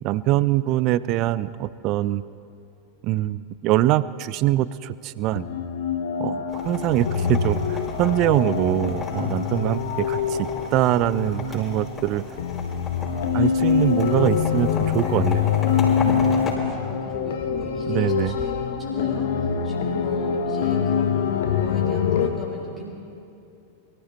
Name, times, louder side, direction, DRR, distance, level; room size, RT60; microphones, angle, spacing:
voice 1, 0.0-2.2 3.0-5.5 6.2-12.2 13.3-15.6 16.0-16.3 17.9-18.4, right 14 dB, 40° right, 18 dB, 0.4 m, -23 dB
sound 1, 5.3-22.3, left 7 dB, 55° left, 1.1 m, -25 dB
sound 2, 6.5-16.5, left 3 dB, 15° left, 4.7 m, -35 dB
voice 2, 16.5-22.9, left 1 dB, 15° right, -4 dB, 4.0 m, -38 dB
sound 3, 16.6-19.0, left 3 dB, 35° left, 3.8 m, -42 dB
23.0 x 14.0 x 4.3 m, 2.6 s
figure-of-eight pair, 90°, 0 cm